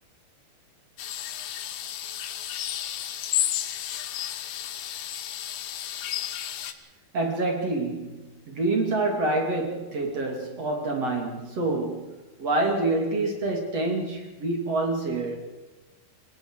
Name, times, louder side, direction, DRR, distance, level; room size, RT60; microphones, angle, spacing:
sound 1, 1.0-6.7, left 11 dB, 65° left, 2.4 m, -32 dB
voice 1, 7.1-15.4, right 2 dB, 35° right, 2 dB, 3.4 m, -27 dB
28.0 x 19.5 x 4.9 m, 1.2 s
omnidirectional pair, 5.5 m